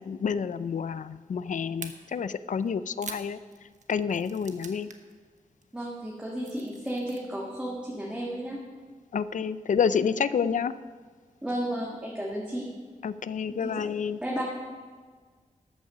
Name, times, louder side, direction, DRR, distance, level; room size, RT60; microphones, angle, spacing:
voice 1, 0.0-3.4 3.9-4.9 9.1-10.7 13.0-14.2, left 6 dB, 65° left, 15 dB, 0.5 m, -29 dB
sound 1, 1.8-1.9 2.6-5.1 5.4-5.6 6.1-7.2, right 5 dB, 60° right, 1.1 m, -44 dB
voice 2, 5.7-8.6 10.4-10.5 11.4-12.7 13.5-13.9 14.2-14.4, right 1 dB, 10° right, -4 dB, 1.7 m, -33 dB
13.5 x 8.7 x 6.3 m, 1.6 s
wide cardioid pair, 130°, 14 cm